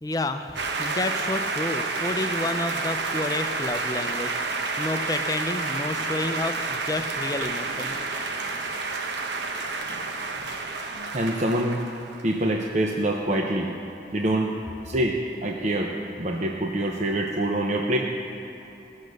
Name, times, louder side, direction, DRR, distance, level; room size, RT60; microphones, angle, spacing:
voice 1, 0.0-7.9, left 2 dB, 20° left, 8 dB, 0.5 m, -30 dB
sound 1, 0.5-12.6, right 3 dB, 85° right, 1.0 m, -30 dB
voice 2, 11.1-11.8 12.2-13.7 14.1-14.5 14.9-18.0, right 1 dB, 40° right, 0 dB, 0.7 m, -25 dB
17.5 x 6.5 x 6.6 m, 2.9 s
head